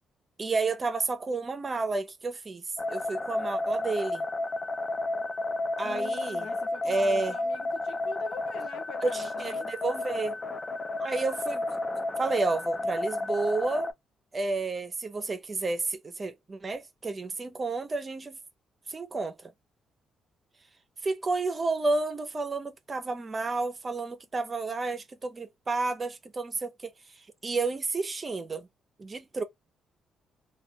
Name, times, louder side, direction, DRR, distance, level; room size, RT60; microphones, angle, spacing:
voice 1, 0.4-2.6 2.9-4.2 5.8-6.5 6.8-7.4 9.0-10.4 11.0-11.6 12.2-13.9 14.3-18.4 18.9-19.5 21.0-28.7 29.0-29.4, right 3 dB, 30° right, 0.5 m, -31 dB
sound 1, 2.8-13.9, left 2 dB, 30° left, 0.4 m, -32 dB
voice 2, 5.8-9.7, left 6 dB, 70° left, 1.0 m, -43 dB
2.2 x 2.2 x 2.6 m
cardioid pair, 90°, 0 cm